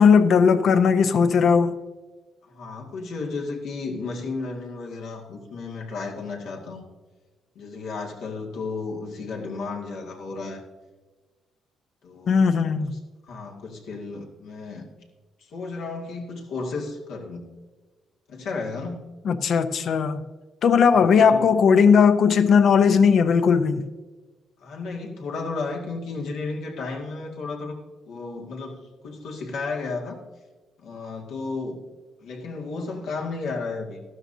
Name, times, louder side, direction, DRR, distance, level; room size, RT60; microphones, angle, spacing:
voice 1, 0.0-1.7 12.3-13.0 19.2-20.2 20.6-23.8, left 6 dB, 65° left, 0.7 m, -18 dB
voice 2, 2.4-6.8 7.6-10.6 12.0-12.5 13.2-14.9 15.4-17.5 18.3-19.1 20.9-21.5 24.6-27.8 28.1-30.2 30.8-31.8 32.2-34.0, left 3 dB, 80° left, 2.1 m, -33 dB
14.0 x 12.5 x 2.8 m
cardioid pair, 90°, 0 cm